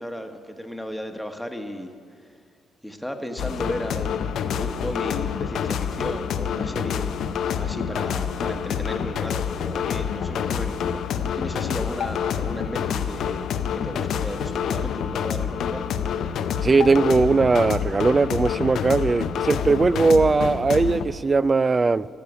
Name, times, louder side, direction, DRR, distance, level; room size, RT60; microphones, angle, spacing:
voice 1, 0.0-2.4 2.8-7.2 7.6-13.5 13.7-15.8, equal, ahead, 1.1 m, -34 dB
sound 1, 3.4-21.1, left 8 dB, 75° left, 0.6 m, -27 dB
voice 2, 16.6-22.1, right 4 dB, 30° right, 0.3 m, -19 dB
12.5 x 6.8 x 9.7 m
cardioid pair, 90°, 0 cm